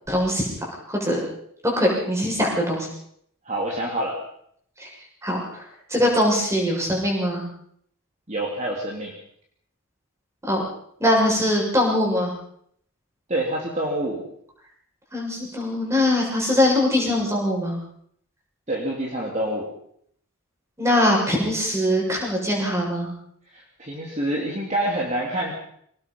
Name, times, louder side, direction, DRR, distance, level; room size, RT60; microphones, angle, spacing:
voice 1, 0.1-1.2 1.6-2.9 4.8-4.9 5.2-5.6 5.9-7.4 10.4-10.6 11.0-12.3 15.1-17.8 20.8-23.1, left 1 dB, 15° right, -1 dB, 6.8 m, -22 dB
voice 2, 3.5-4.2 8.3-9.1 13.3-14.2 18.7-19.7 23.5-25.5, right 1 dB, 30° right, -2 dB, 3.5 m, -27 dB
25.5 x 19.0 x 5.6 m, 0.67 s
head